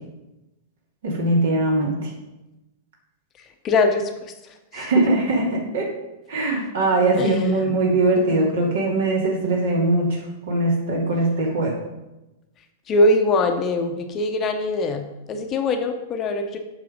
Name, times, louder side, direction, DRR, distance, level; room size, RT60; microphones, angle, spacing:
voice 1, 1.0-2.1 4.7-5.9 6.3-10.2 10.5-11.7, right 2 dB, 60° right, -1 dB, 2.6 m, -21 dB
voice 2, 3.6-4.1 4.7-4.9 7.2-7.6 12.9-16.6, left 2 dB, 30° left, 6 dB, 0.9 m, -22 dB
7.7 x 5.6 x 5.3 m, 0.99 s
figure-of-eight pair, 95°, 0 cm